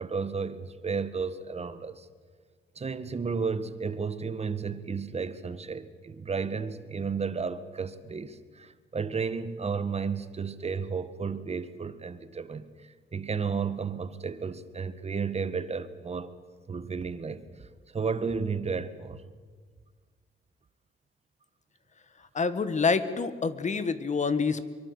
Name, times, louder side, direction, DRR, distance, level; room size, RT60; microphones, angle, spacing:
voice 1, 0.0-2.0 2.7-12.7 13.1-16.3 16.7-17.5 17.9-19.2, right 5 dB, 30° right, 1.7 m, -33 dB
voice 2, 22.3-24.7, left 4 dB, 35° left, 1.5 m, -27 dB
24.0 x 23.0 x 8.2 m
cardioid pair, 90°, 20 cm